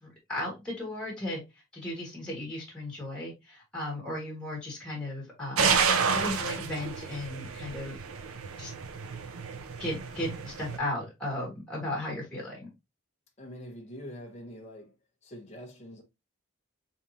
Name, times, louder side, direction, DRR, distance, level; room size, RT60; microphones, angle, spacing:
voice 1, 0.0-1.4 1.7-8.0 8.6-8.7 9.8-12.7, left 1 dB, 5° left, 1.4 m, -36 dB
sound 1, 5.6-10.8, right 6 dB, 90° right, 0.5 m, -30 dB
voice 2, 13.4-14.9 15.2-16.0, equal, 30° left, 0.8 m, -44 dB
3.6 x 3.6 x 2.7 m
head